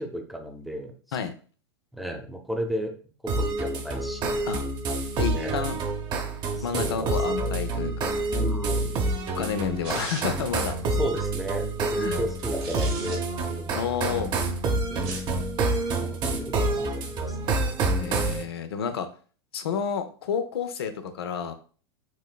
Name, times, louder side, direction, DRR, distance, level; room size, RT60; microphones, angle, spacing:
voice 1, 0.0-1.2 1.9-2.9 3.2-4.4 5.3-5.7 6.6-7.4 8.4-9.0 11.0-13.2 13.5-13.8 14.9-15.2 16.0-17.6 18.0-18.3, equal, ahead, 3 dB, 0.7 m, -34 dB
sound 1, 3.3-18.4, right 2 dB, 35° right, 0.7 m, -28 dB
voice 2, 5.2-5.8 6.6-8.1 9.4-10.8 12.0-12.2 13.7-14.3 18.0-19.1 19.5-21.5, left 7 dB, 75° left, 9 dB, 0.6 m, -30 dB
sound 2, 9.8-10.5 12.4-13.2 14.9-15.4, right 4 dB, 65° right, 1.1 m, -38 dB
6.1 x 2.0 x 2.2 m, 0.40 s
hypercardioid pair, 100°, 13 cm